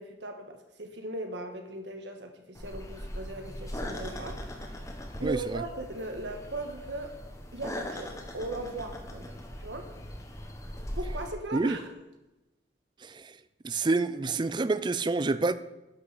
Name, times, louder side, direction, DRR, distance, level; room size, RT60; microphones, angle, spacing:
voice 1, 0.0-4.8 5.2-7.2 7.5-9.9 11.0-11.9, right 2 dB, 70° right, 1.4 m, -38 dB
sound 1, 2.5-11.3, left 1 dB, 15° left, 1.2 m, -40 dB
voice 2, 5.2-5.6 11.5-11.8 13.0-13.3 13.6-15.6, right 3 dB, 25° right, 0.4 m, -28 dB
11.5 x 5.9 x 6.7 m
head